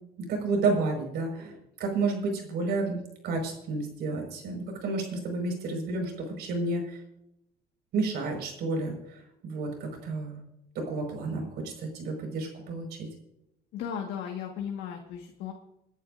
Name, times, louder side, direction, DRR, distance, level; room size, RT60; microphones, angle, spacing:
voice 1, 0.2-7.0 7.9-10.4 10.8-13.1, right 3 dB, 75° right, 2 dB, 5.2 m, -31 dB
voice 2, 13.7-15.5, left 8 dB, 85° left, 1 dB, 1.7 m, -36 dB
28.5 x 11.0 x 2.6 m, 0.84 s
cardioid pair, 110°, 17 cm